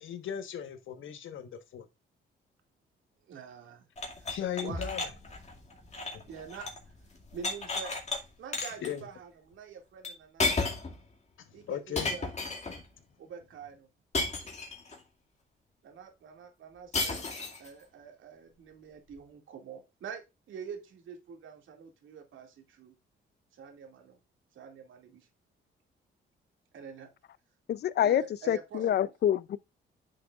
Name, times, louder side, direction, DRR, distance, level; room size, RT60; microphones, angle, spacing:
voice 1, 0.0-1.9 4.3-5.1 5.9-6.2 8.8-9.1 11.4-12.1, left 9 dB, 75° left, 1.3 m, -38 dB
voice 2, 3.3-4.3 4.6-4.9 6.0-6.7 7.3-7.9 8.4-10.8 11.5-12.3 13.2-13.9 15.8-17.3 17.6-22.9 23.5-24.2 24.5-25.3 26.7-27.1 28.0-29.1, right 6 dB, 75° right, 2.3 m, -46 dB
sound 1, 4.0-6.9 7.1-8.2 8.5-8.9 10.0-10.1 10.4-11.0 12.0-12.8 14.1-15.0 16.9-17.7, left 3 dB, 35° left, 2.2 m, -33 dB
sound 2, 4.7-8.6, right 1 dB, 10° right, 2.0 m, -48 dB
voice 3, 27.7-29.6, left 10 dB, 55° left, 0.5 m, -27 dB
9.8 x 6.1 x 2.4 m
cardioid pair, 85°, 20 cm